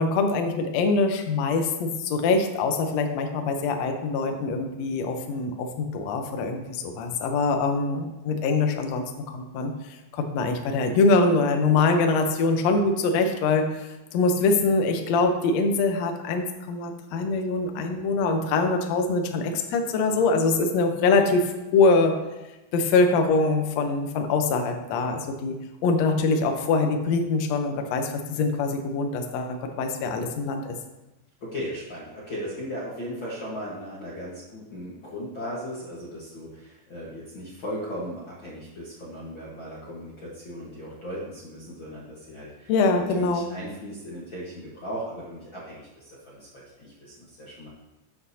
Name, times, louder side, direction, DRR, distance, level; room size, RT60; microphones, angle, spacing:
voice 1, 0.0-9.1 9.3-9.7 10.1-22.1 22.7-30.7 42.7-43.5, left 3 dB, 85° left, 4 dB, 1.5 m, -24 dB
voice 2, 31.4-47.7, equal, 55° left, -6 dB, 1.4 m, -37 dB
12.5 x 7.7 x 2.8 m, 1.0 s
omnidirectional pair, 4.4 m